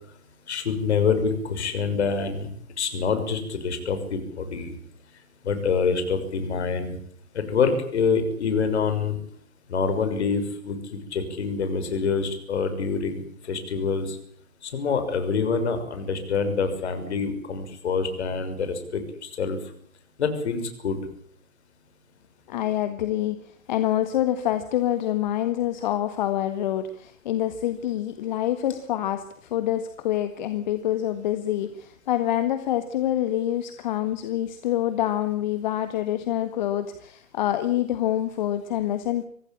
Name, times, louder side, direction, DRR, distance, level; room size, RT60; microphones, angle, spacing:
voice 1, 0.5-2.5 2.8-4.7 5.4-6.9 7.3-9.2 9.7-10.8 11.1-14.2 14.6-19.6 20.2-21.0, left 5 dB, 50° left, 8 dB, 6.4 m, -26 dB
voice 2, 22.5-39.2, left 12 dB, 35° left, 10 dB, 1.7 m, -26 dB
25.5 x 16.5 x 8.8 m, 0.63 s
figure-of-eight pair, 130°, 42 cm